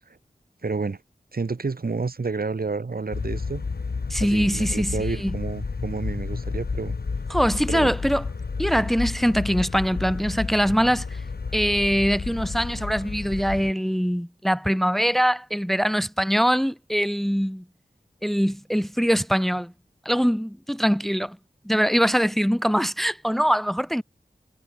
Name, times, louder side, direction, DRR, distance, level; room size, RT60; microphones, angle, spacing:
voice 1, 0.6-1.0 1.3-3.6 4.2-7.0 7.7-7.9, right 4 dB, 70° right, 2.8 m, -30 dB
sound 1, 3.1-13.7, left 4 dB, 90° left, 3.1 m, -31 dB
voice 2, 4.1-5.3 7.3-8.2 8.6-11.2 11.5-17.6 18.2-19.7 20.0-21.4 21.6-24.0, equal, ahead, 1.4 m, -23 dB
wide cardioid pair, 60°, 16 cm